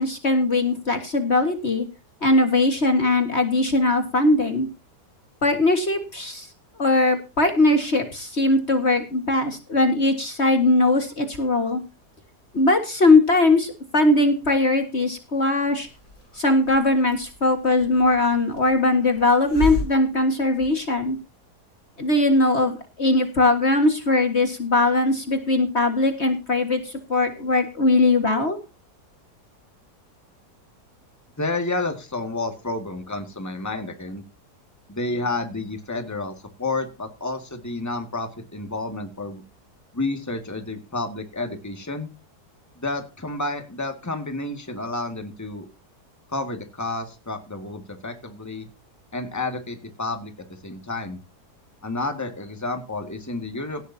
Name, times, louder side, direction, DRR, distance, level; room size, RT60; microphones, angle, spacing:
voice 1, 0.0-1.9 2.2-4.7 5.4-6.5 6.8-11.8 12.5-15.9 16.3-21.2 22.0-28.6, left 2 dB, 40° left, 6 dB, 2.0 m, -20 dB
Hiss, 15.7-21.2, left 1 dB, 65° left, 6.9 m, -35 dB
voice 2, 31.4-34.2 34.9-39.4 39.9-42.1 42.8-45.7 46.3-48.7 49.1-50.3 50.6-51.2 51.8-53.8, left 2 dB, 10° left, 6 dB, 2.0 m, -30 dB
17.0 x 12.0 x 2.8 m, 0.29 s
omnidirectional pair, 1.7 m